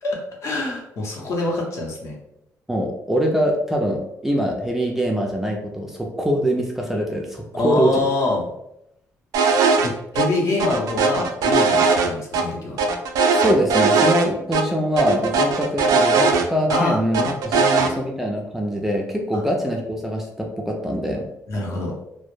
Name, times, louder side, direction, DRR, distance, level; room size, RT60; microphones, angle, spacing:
voice 1, 0.0-2.2 7.5-8.4 9.8-12.8 16.7-17.9 19.3-19.4 21.5-21.9, left 2 dB, 55° left, -1 dB, 0.7 m, -25 dB
voice 2, 2.7-8.0 13.3-21.3, equal, 5° right, 0 dB, 0.3 m, -23 dB
sound 1, 9.3-9.9 10.1-10.3 10.6-12.4 12.8-14.3 14.5-14.6 15.0-16.8 17.1-17.9, right 4 dB, 80° right, 0.3 m, -19 dB
2.1 x 2.0 x 3.0 m, 0.79 s
cardioid pair, 125°, 6 cm